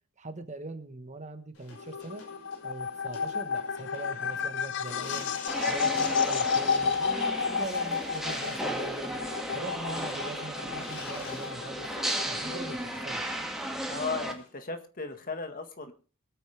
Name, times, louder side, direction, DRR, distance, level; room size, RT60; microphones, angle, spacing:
voice 1, 0.2-2.2 2.6-5.3 5.7-9.2 9.5-11.9 12.3-12.8 13.0-13.2, right 2 dB, 35° right, 8 dB, 1.4 m, -41 dB
sound 1, 1.5-14.5, left 3 dB, 70° left, 5.8 m, -49 dB
sound 2, 1.8-13.0, left 6 dB, 55° left, 0.6 m, -32 dB
sound 3, 5.5-14.3, right 1 dB, ahead, 2.1 m, -35 dB
voice 2, 13.9-15.9, left 4 dB, 40° left, 7 dB, 1.6 m, -35 dB
24.0 x 9.2 x 3.4 m, 0.37 s
head